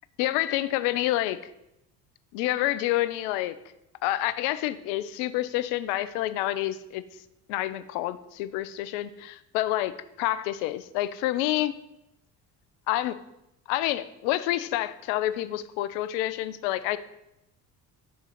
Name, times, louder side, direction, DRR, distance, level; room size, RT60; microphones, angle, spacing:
voice 1, 0.2-1.4 2.3-3.6 4.0-7.0 7.5-11.7 12.9-13.2 13.7-17.0, left 14 dB, 60° left, 15 dB, 0.5 m, -28 dB
6.7 x 3.7 x 4.2 m, 0.86 s
hypercardioid pair, 60°, 49 cm